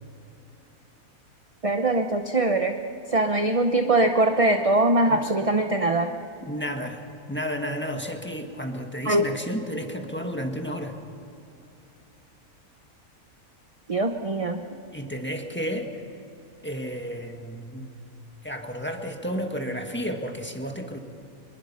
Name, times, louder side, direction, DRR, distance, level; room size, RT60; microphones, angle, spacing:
voice 1, 1.6-2.8 3.1-6.1 9.0-9.3 13.9-14.7, right 2 dB, 30° right, 5 dB, 0.8 m, -22 dB
voice 2, 6.4-7.0 7.3-11.0 14.9-16.0 16.6-17.9 18.4-21.0, equal, 10° left, 3 dB, 1.6 m, -32 dB
25.0 x 22.0 x 5.7 m, 3.0 s
omnidirectional pair, 1.5 m